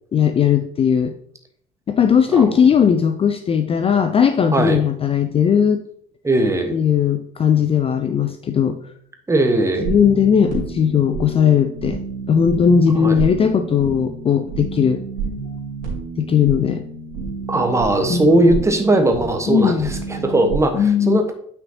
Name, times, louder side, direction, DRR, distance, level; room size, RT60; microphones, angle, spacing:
voice 1, 0.1-1.1 1.9-5.8 6.7-8.9 9.8-12.0 12.3-15.0 16.2-16.8 18.1-18.5 19.5-19.9 20.7-21.2, left 7 dB, 25° left, 9 dB, 0.5 m, -17 dB
voice 2, 6.2-6.7 9.3-9.9 12.9-13.2 17.5-21.3, right 1 dB, 15° right, 5 dB, 1.2 m, -18 dB
sound 1, 9.7-20.6, right 5 dB, 70° right, 2.8 m, -30 dB
9.1 x 5.7 x 2.8 m, 0.65 s
figure-of-eight pair, 55°, 21 cm